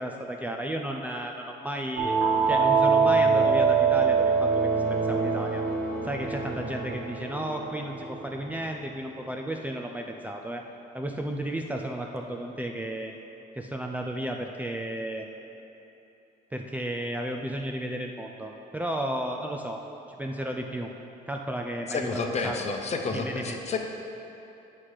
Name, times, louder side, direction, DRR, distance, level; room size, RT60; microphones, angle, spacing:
voice 1, 0.0-2.1 2.5-5.6 6.0-10.6 10.9-13.1 13.6-15.3 16.5-19.8 20.2-20.9 21.3-22.6 23.1-23.6, right 1 dB, 10° right, 1 dB, 0.5 m, -33 dB
sound 1, 2.0-8.4, right 5 dB, 90° right, 1.5 m, -24 dB
voice 2, 21.9-23.8, left 4 dB, 40° left, 3 dB, 0.9 m, -30 dB
8.2 x 5.8 x 4.9 m, 2.9 s
cardioid pair, 110°, 17 cm